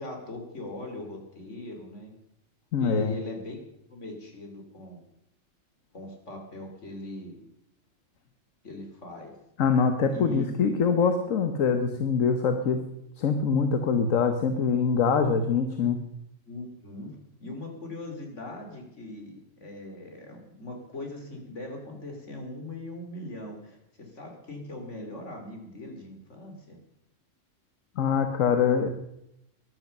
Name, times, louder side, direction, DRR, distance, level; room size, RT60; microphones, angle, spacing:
voice 1, 0.0-2.1 2.8-3.6 3.9-5.0 5.9-7.4 8.6-9.3 10.1-10.5 16.5-17.1 17.4-26.8, left 2 dB, 65° left, 3 dB, 3.4 m, -40 dB
voice 2, 2.7-3.2 9.6-12.8 13.2-16.0 28.0-28.9, left 5 dB, 80° left, 7 dB, 1.5 m, -24 dB
14.0 x 11.5 x 6.6 m, 0.79 s
omnidirectional pair, 1.3 m